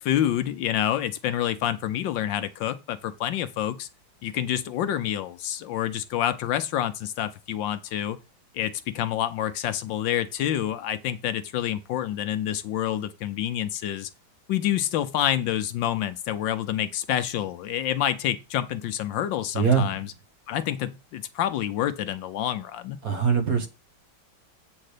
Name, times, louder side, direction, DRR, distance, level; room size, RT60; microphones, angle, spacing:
voice 1, 0.0-3.9 4.2-8.2 8.5-14.1 14.5-20.1 20.5-23.0, left 11 dB, 75° left, 1.3 m, -28 dB
voice 2, 19.5-19.9 23.0-23.7, right 6 dB, 50° right, 1.6 m, -22 dB
8.6 x 3.8 x 6.5 m
omnidirectional pair, 2.2 m